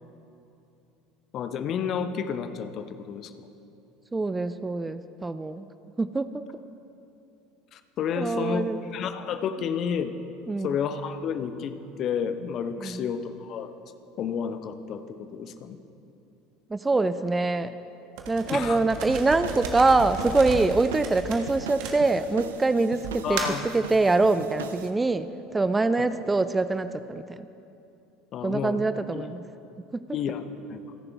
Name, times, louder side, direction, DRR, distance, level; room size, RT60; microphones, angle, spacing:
voice 1, 1.3-3.3 7.7-10.1 10.6-13.7 14.2-15.8 18.5-18.8 23.2-23.6 26.0-26.1 28.3-28.8 29.1-29.2 30.1-30.4 30.7-30.8, left 7 dB, 45° left, 10 dB, 0.9 m, -31 dB
voice 2, 4.1-5.7 6.0-6.4 8.2-8.8 10.5-10.8 12.8-13.1 16.7-17.7 18.3-25.3 25.5-27.4 28.4-29.4 29.9-30.0, right 3 dB, 15° right, 12 dB, 0.5 m, -24 dB
sound 1, 18.2-22.5 23.0-23.7, right 5 dB, 55° right, 1.6 m, -35 dB
sound 2, 19.0-24.9, right 7 dB, 70° right, 0.7 m, -41 dB
28.0 x 11.0 x 3.5 m, 2.8 s
figure-of-eight pair, 70°, 0 cm